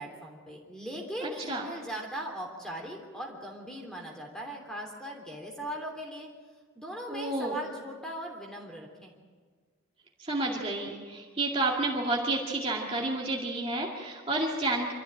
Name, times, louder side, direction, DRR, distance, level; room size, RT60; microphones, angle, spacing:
voice 1, 0.0-6.3 6.7-9.1, equal, 5° left, 0 dB, 3.1 m, -39 dB
voice 2, 1.2-1.6 7.1-7.5 10.3-14.9, right 2 dB, 30° right, -2 dB, 2.2 m, -30 dB
25.5 x 13.5 x 8.7 m, 1.5 s
head